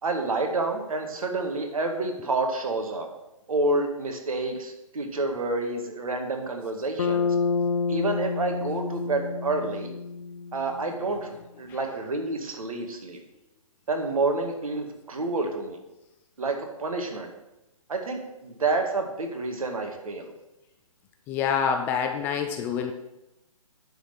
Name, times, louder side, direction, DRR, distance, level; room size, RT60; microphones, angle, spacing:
voice 1, 0.0-3.1 3.5-7.4 7.9-9.9 10.5-13.2 13.9-15.8 16.4-17.3 17.9-20.3, right 3 dB, 75° right, 4 dB, 1.9 m, -29 dB
Bass guitar, 7.0-11.1, left 5 dB, 55° left, 0.7 m, -29 dB
voice 2, 21.3-22.9, left 7 dB, 10° left, 5 dB, 0.3 m, -26 dB
10.0 x 4.2 x 7.0 m, 0.93 s
hypercardioid pair, 145°, 18 cm